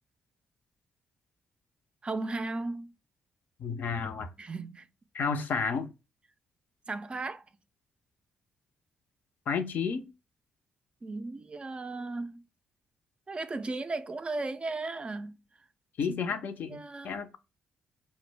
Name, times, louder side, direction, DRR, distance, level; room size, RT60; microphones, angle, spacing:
voice 1, 2.0-2.9 4.4-4.8 6.9-7.4 11.0-12.4 13.3-15.4 16.7-17.4, right 3 dB, 30° right, 0.3 m, -36 dB
voice 2, 3.6-4.3 5.1-5.9 9.5-10.1 16.0-17.4, left 5 dB, 60° left, 0.4 m, -31 dB
2.1 x 2.0 x 3.2 m
supercardioid pair, 50°, 3 cm